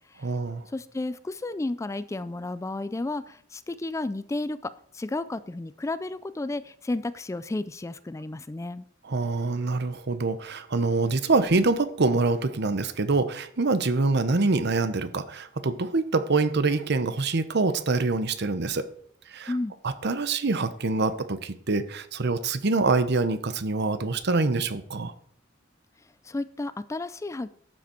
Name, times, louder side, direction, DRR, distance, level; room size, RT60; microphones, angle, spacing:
voice 1, 0.2-0.7 9.0-18.9 19.3-19.5 19.8-25.1, right 3 dB, 60° right, 13 dB, 0.9 m, -25 dB
voice 2, 0.7-8.8 19.5-19.7 26.2-27.5, left 2 dB, 15° left, 15 dB, 0.3 m, -32 dB
12.5 x 7.4 x 4.5 m, 0.63 s
head